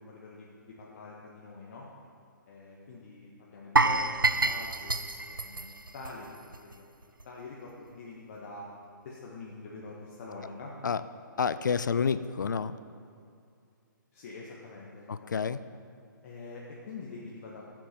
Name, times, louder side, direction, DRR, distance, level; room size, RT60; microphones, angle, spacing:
voice 1, 0.0-1.9 2.5-5.7 5.9-6.8 7.2-8.7 9.0-10.7 11.5-11.7 14.1-15.5 16.2-17.7, left 3 dB, 40° left, -4 dB, 1.3 m, -45 dB
sound 1, 3.8-6.8 7.0-7.2 7.7-7.8, right 2 dB, 90° right, 0.5 m, -28 dB
voice 2, 11.4-12.7 15.1-15.6, left 6 dB, 65° left, 14 dB, 0.4 m, -29 dB
14.0 x 7.6 x 4.4 m, 2.4 s
figure-of-eight pair, 130°, 11 cm